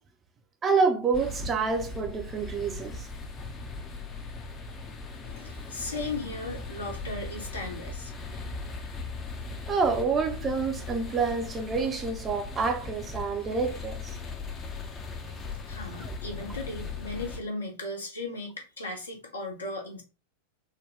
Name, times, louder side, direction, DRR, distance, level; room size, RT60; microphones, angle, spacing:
voice 1, 0.6-3.1 9.7-14.2 16.1-16.2, right 4 dB, 20° right, 0.6 m, -28 dB
sound 1, 1.1-17.4, left 3 dB, 25° left, 0.6 m, -39 dB
voice 2, 5.2-8.1 15.7-20.0, left 2 dB, 75° left, 1.0 m, -36 dB
3.8 x 2.2 x 3.2 m
figure-of-eight pair, 90°, 0 cm